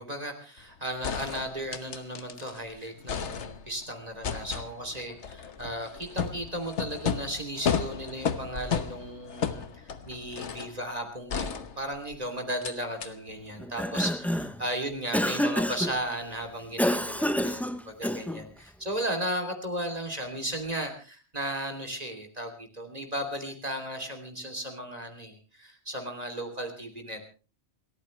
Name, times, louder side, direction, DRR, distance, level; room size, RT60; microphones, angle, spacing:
voice 1, 0.0-27.3, right 1 dB, 35° right, 4 dB, 3.1 m, -35 dB
sound 1, 0.6-0.7 1.0-2.6 2.9-3.8 4.2-10.8 11.3-12.2 12.6-12.7 13.0-13.1, left 7 dB, 85° left, 1.4 m, -33 dB
Cough, 13.6-14.6 15.1-16.0 16.8-18.5, equal, ahead, 0.5 m, -28 dB
28.5 x 14.0 x 3.2 m, 0.35 s
omnidirectional pair, 1.2 m